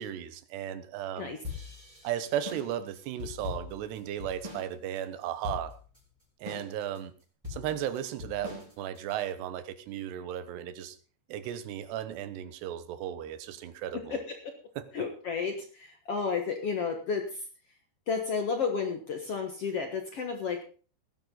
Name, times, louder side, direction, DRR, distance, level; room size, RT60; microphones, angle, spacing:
voice 1, 0.0-1.3 2.0-5.7 6.4-7.1 7.5-11.0 11.3-14.2 14.8-14.9, right 10 dB, 75° right, 12 dB, 3.0 m, -35 dB
sound 1, 1.4-4.7 5.0-5.1 5.4-6.0 6.5-7.0 7.4-9.2, left 5 dB, 10° right, 3.6 m, -41 dB
voice 2, 14.1-14.5 14.9-17.4 18.1-20.6, left 5 dB, 75° left, 4 dB, 1.4 m, -32 dB
18.0 x 10.5 x 3.9 m, 0.39 s
omnidirectional pair, 5.0 m